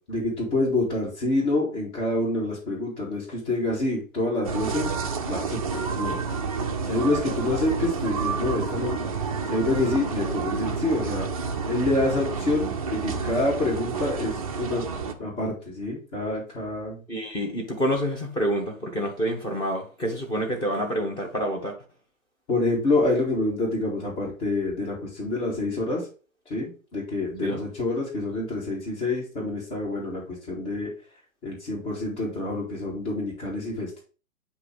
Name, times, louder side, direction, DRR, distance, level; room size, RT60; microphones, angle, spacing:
voice 1, 0.1-4.9 5.3-6.2 6.8-8.9 9.5-11.3 11.7-14.8 15.2-17.0 22.5-26.1 26.5-30.9 31.4-34.0, left 2 dB, 30° left, 2.4 m, -27 dB
sound 1, 4.4-15.1, right 5 dB, 30° right, 0.4 m, -29 dB
voice 2, 17.1-21.7 27.4-27.6, equal, 10° left, 1.2 m, -27 dB
8.1 x 2.8 x 4.7 m
figure-of-eight pair, 135°, 41 cm